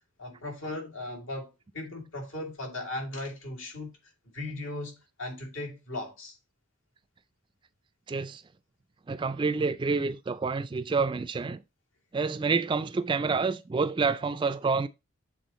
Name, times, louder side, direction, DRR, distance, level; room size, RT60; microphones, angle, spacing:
voice 1, 0.2-3.9 4.2-6.4, left 2 dB, 75° left, 2.1 m, -37 dB
voice 2, 8.1-8.4 9.1-11.6 12.1-14.9, right 4 dB, 25° right, 0.3 m, -28 dB
7.9 x 3.7 x 4.0 m
head